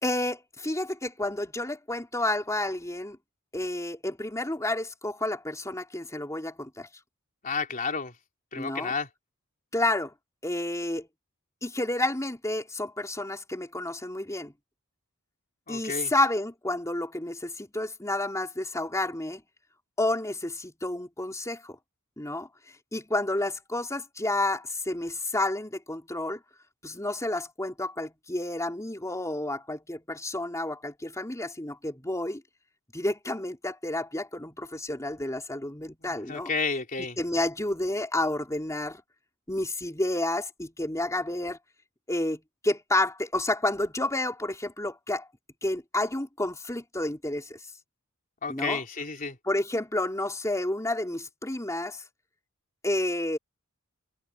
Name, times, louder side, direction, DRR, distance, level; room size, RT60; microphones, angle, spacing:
voice 1, 0.0-3.2 3.5-6.9 8.6-8.9 9.7-10.1 10.4-11.1 11.6-14.5 15.7-19.4 20.0-21.8 22.2-22.5 22.9-26.4 26.8-32.4 32.9-36.5 37.2-39.0 39.5-41.6 42.1-45.3 45.6-47.6 48.5-48.8 49.4-52.0 52.8-53.4, left 1 dB, 15° left, 4.0 m, -30 dB
voice 2, 7.4-8.1 8.5-9.1 15.7-16.1 36.1-37.2 48.4-49.4, left 4 dB, 40° left, 3.6 m, -31 dB
head